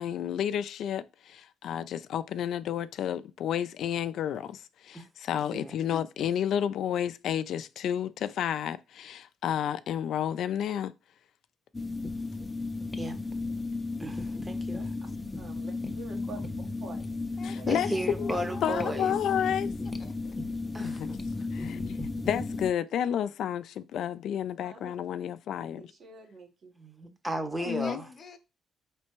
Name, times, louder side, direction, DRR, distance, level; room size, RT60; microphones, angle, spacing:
voice 1, 0.0-10.9 17.4-17.9 18.2-19.7 20.8-21.1 21.5-25.9 27.7-28.0, left 9 dB, 75° left, 0.3 m, -31 dB
sound 1, 11.7-22.7, left 3 dB, 15° left, 0.6 m, -34 dB
voice 2, 14.0-14.9 17.7-19.1 20.7-21.2 26.8-28.0, right 1 dB, 10° right, 0.8 m, -35 dB
voice 3, 15.4-16.5 16.8-17.1 17.4-17.7 24.6-24.9 25.8-26.7, right 4 dB, 60° right, 1.3 m, -47 dB
voice 4, 17.4-18.9 20.0-20.3 21.6-21.7 27.6-28.4, left 5 dB, 50° left, 0.8 m, -47 dB
4.3 x 3.3 x 3.0 m
cardioid pair, 90°, 0 cm